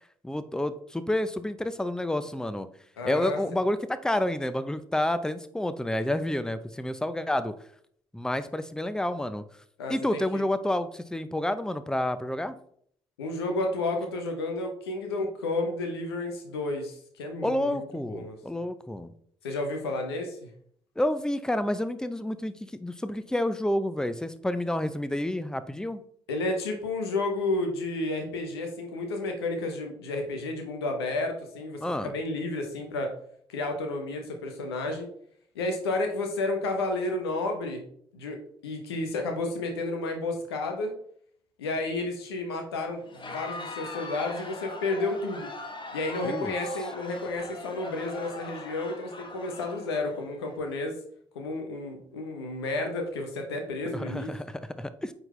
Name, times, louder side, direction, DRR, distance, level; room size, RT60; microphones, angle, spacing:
voice 1, 0.2-2.7 3.0-7.5 8.1-9.4 9.9-12.5 17.4-19.1 21.0-22.5 22.8-26.0 31.8-32.1 46.2-46.5 53.9-55.1, left 1 dB, 5° left, 13 dB, 0.6 m, -29 dB
voice 2, 3.0-3.4 9.8-10.4 13.2-18.4 19.4-20.5 26.3-33.1 33.5-35.1 35.5-37.8 38.1-40.9 41.6-45.5 45.9-50.9 51.3-54.3, left 2 dB, 85° left, 4 dB, 0.9 m, -31 dB
Crowd, 43.0-50.6, left 2 dB, 40° left, 1.2 m, -41 dB
8.9 x 4.0 x 3.3 m, 0.63 s
hypercardioid pair, 40°, 13 cm